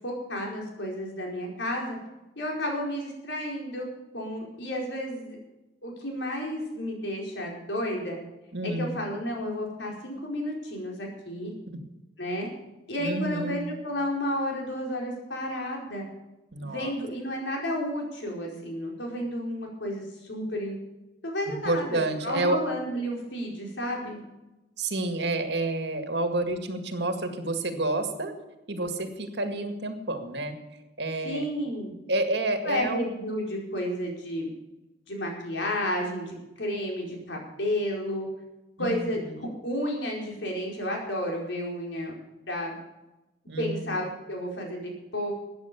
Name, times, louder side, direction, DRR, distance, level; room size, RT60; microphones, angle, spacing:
voice 1, 0.0-2.0 2.4-3.9 4.1-5.4 5.8-8.2 8.8-11.5 12.2-12.5 12.9-16.1 16.6-20.8 21.2-24.2 31.2-31.9 32.7-34.5 35.1-38.3 38.8-39.2 39.6-42.1 42.5-42.7 43.6-45.3, equal, 85° left, 0 dB, 4.7 m, -32 dB
voice 2, 8.5-8.9 13.0-13.6 16.5-16.9 21.6-22.6 24.8-28.3 28.7-30.6 31.0-31.4 32.1-33.0 38.8-39.3 43.5-43.9, right 2 dB, 75° right, 6 dB, 2.0 m, -29 dB
14.0 x 9.7 x 7.0 m, 0.99 s
head